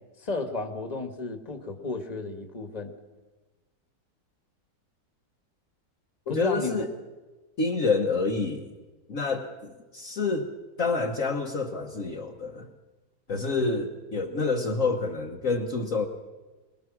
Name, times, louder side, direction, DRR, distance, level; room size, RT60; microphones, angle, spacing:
voice 1, 0.2-2.9 6.3-6.9, left 3 dB, 25° left, 6 dB, 1.8 m, -33 dB
voice 2, 6.3-6.9 7.6-8.7 9.1-10.5 10.8-12.7 13.3-16.1, left 3 dB, 50° left, 1 dB, 1.6 m, -28 dB
24.0 x 21.0 x 6.2 m, 1.2 s
omnidirectional pair, 1.9 m